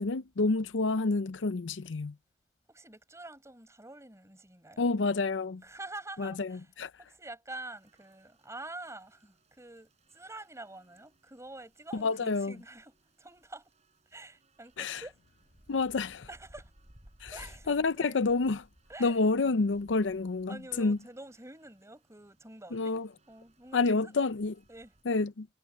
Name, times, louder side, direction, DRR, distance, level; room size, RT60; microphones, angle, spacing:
voice 1, 0.0-2.2 4.8-5.6 6.2-6.9 11.9-12.6 14.8-15.0 15.7-16.3 17.2-17.4 17.7-18.7 19.0-21.0 22.7-23.1 23.7-24.5 25.1-25.5, left 3 dB, 80° left, 0.6 m, -29 dB
voice 2, 2.7-4.9 5.6-6.7 7.0-13.7 14.1-15.1 16.3-16.7 17.3-18.2 18.9-19.2 20.5-23.0 23.3-24.1 24.7-24.9, right 2 dB, 15° right, 5.1 m, -47 dB
sound 1, 7.7-25.0, equal, 35° right, 7.7 m, -62 dB
head